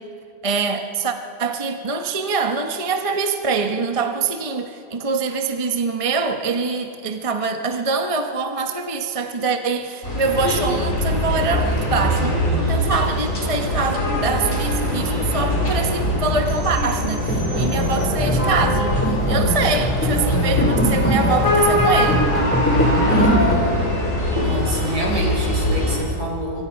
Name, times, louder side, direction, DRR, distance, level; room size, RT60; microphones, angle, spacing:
voice 1, 0.4-22.2, right 4 dB, 25° right, 5 dB, 1.0 m, -24 dB
sound 1, 10.0-26.0, left 1 dB, 45° left, 5.5 m, -22 dB
sound 2, 17.3-23.5, equal, 5° left, 2.4 m, -22 dB
voice 2, 23.1-23.8 24.4-26.6, equal, 65° right, 0 dB, 5.0 m, -27 dB
25.0 x 24.5 x 5.3 m, 2.5 s
omnidirectional pair, 1.9 m